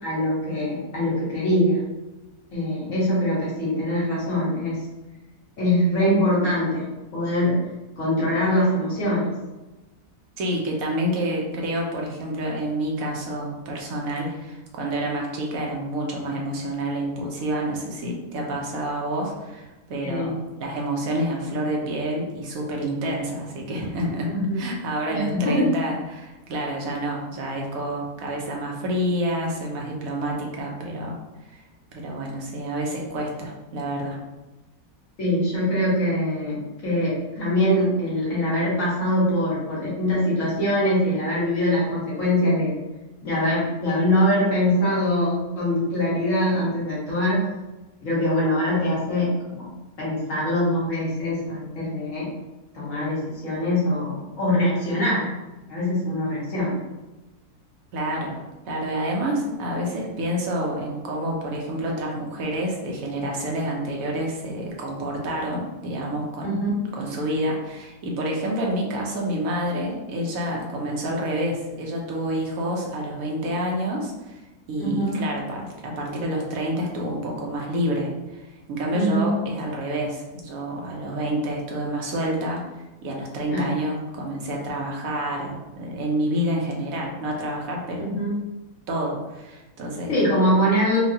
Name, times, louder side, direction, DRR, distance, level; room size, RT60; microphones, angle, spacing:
voice 1, 0.0-1.8 2.5-4.8 5.6-6.8 7.1-7.6 8.0-9.3 20.0-20.3 24.3-24.6 25.1-25.7 35.2-42.7 43.2-47.5 48.0-49.7 50.0-52.3 52.7-55.3 55.7-56.8 66.4-66.7 74.8-75.2 78.9-79.3 83.5-83.8 88.0-88.4 90.1-91.0, left 1 dB, 55° left, -8 dB, 1.9 m, -23 dB
voice 2, 10.4-20.3 20.6-24.3 24.5-31.2 31.4-31.6 31.9-34.2 57.9-58.4 58.7-66.7 66.9-74.4 74.7-78.4 78.7-82.6 83.0-88.1 88.9-90.2, right 1 dB, 65° right, -1 dB, 1.2 m, -28 dB
4.5 x 2.4 x 2.8 m, 1.1 s
omnidirectional pair, 1.7 m